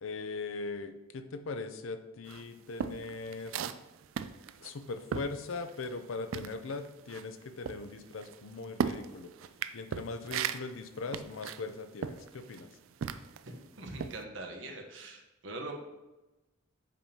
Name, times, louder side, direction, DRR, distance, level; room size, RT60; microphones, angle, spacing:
voice 1, 0.0-3.5 4.6-9.3 9.7-12.7, left 3 dB, 85° left, 9 dB, 0.6 m, -40 dB
sound 1, 2.3-6.0 6.3-13.5 14.0-14.2, right 7 dB, 85° right, 0.4 m, -37 dB
voice 2, 13.4-15.7, right 2 dB, 65° right, 3 dB, 1.0 m, -43 dB
7.4 x 5.3 x 2.8 m, 1.1 s
head